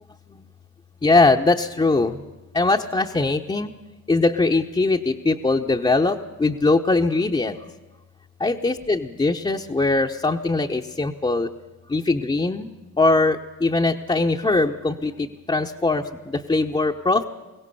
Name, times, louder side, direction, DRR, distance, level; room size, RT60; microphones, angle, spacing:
voice 1, 1.0-2.2 2.5-3.7 4.1-7.6 8.4-11.5 11.9-17.2, left 3 dB, 15° left, 0 dB, 0.9 m, -21 dB
22.0 x 17.0 x 6.9 m, 1.2 s
cardioid pair, 90°, 30 cm